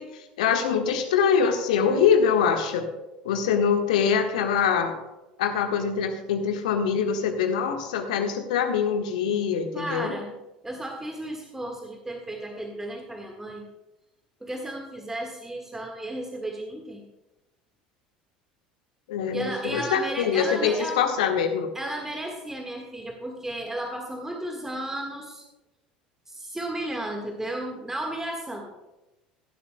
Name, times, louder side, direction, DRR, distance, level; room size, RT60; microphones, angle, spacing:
voice 1, 0.0-2.9 3.2-4.9 5.4-10.1 19.1-21.7, left 7 dB, 65° left, 6 dB, 1.3 m, -24 dB
voice 2, 9.7-10.3 10.6-13.6 14.4-17.0 19.3-21.0 21.7-25.4 26.3-28.7, right 1 dB, 10° right, 2 dB, 1.5 m, -34 dB
16.0 x 11.5 x 2.2 m, 1.0 s
figure-of-eight pair, 65°, 4 cm